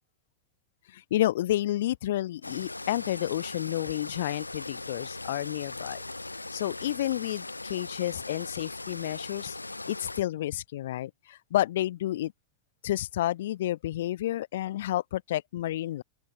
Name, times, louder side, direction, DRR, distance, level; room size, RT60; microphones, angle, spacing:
voice 1, 0.9-6.0 6.5-9.6 9.9-12.3 12.8-16.0, left 13 dB, 55° left, 0.8 m, -30 dB
sound 1, 2.4-10.2, left 2 dB, 85° left, 1.8 m, -39 dB
open air
figure-of-eight pair, 90°, 0 cm